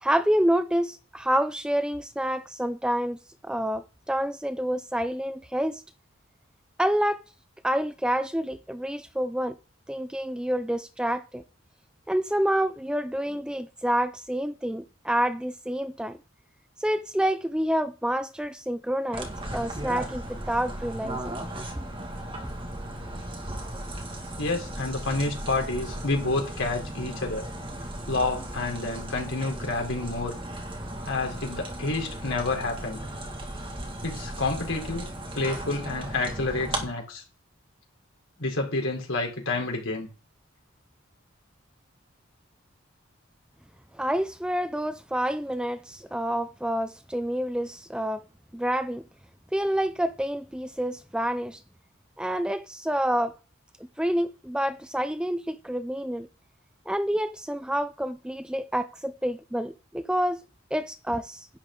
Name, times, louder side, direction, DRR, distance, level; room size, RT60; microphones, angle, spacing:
voice 1, 0.0-3.2 3.4-5.8 6.8-7.2 7.6-9.6 9.9-11.4 12.1-16.2 16.8-21.3 21.8-21.9 43.9-48.2 48.5-49.0 49.5-51.6 52.2-53.4 54.0-56.3 56.9-60.4 60.7-61.5, equal, 5° right, 0.4 m, -28 dB
sound 1, 19.1-36.8, right 1 dB, 25° right, 2.0 m, -36 dB
voice 2, 24.4-27.5 28.1-30.3 31.0-33.0 34.0-35.1 35.3-37.2 38.4-40.1, left 2 dB, 75° left, 3.9 m, -29 dB
11.0 x 9.2 x 3.8 m
head